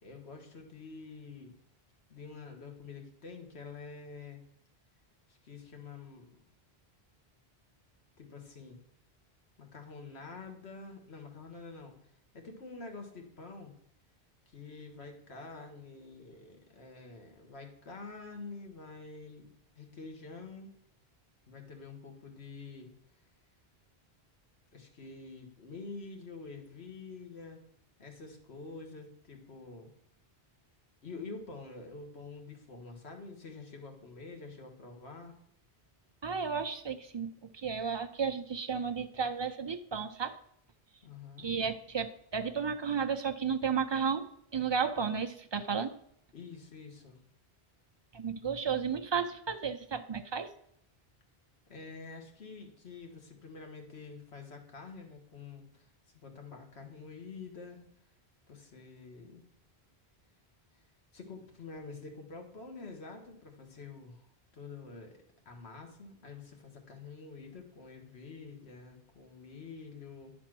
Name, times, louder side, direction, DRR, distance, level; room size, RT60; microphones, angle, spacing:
voice 1, 0.0-1.6 2.1-4.4 5.3-6.4 8.2-8.8 9.6-13.7 14.5-20.7 21.5-22.9 24.7-27.6 28.0-29.9 31.0-35.4 41.0-41.5 46.3-47.2 51.7-55.9 56.1-57.8 58.5-59.4 61.1-64.3 64.5-65.2 65.4-70.3, left 4 dB, 90° left, 3 dB, 1.6 m, -47 dB
voice 2, 36.2-40.4 41.4-46.0 48.1-50.5, right 6 dB, 40° right, 7 dB, 0.4 m, -33 dB
9.9 x 4.3 x 6.0 m, 0.72 s
omnidirectional pair, 1.1 m